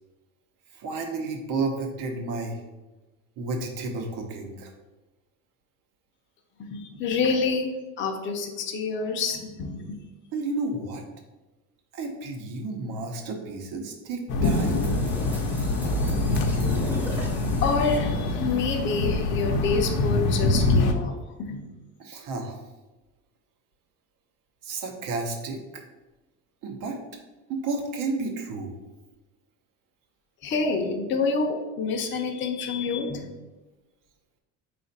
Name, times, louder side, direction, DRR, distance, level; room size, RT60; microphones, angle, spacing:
voice 1, 0.7-2.6 3.4-4.7 10.3-11.0 11.9-14.9 22.0-22.6 24.6-25.8 26.6-27.0 27.5-28.8, right 3 dB, 65° right, 3 dB, 0.9 m, -32 dB
voice 2, 6.6-10.0 17.6-21.1 21.4-21.8 30.4-33.4, left 4 dB, 35° left, 2 dB, 0.5 m, -28 dB
sound 1, 14.3-20.9, left 2 dB, 85° left, 0.7 m, -24 dB
sound 2, 14.4-18.6, right 2 dB, 5° right, 0.7 m, -36 dB
4.2 x 2.5 x 4.0 m, 1.1 s
cardioid pair, 140°, 35 cm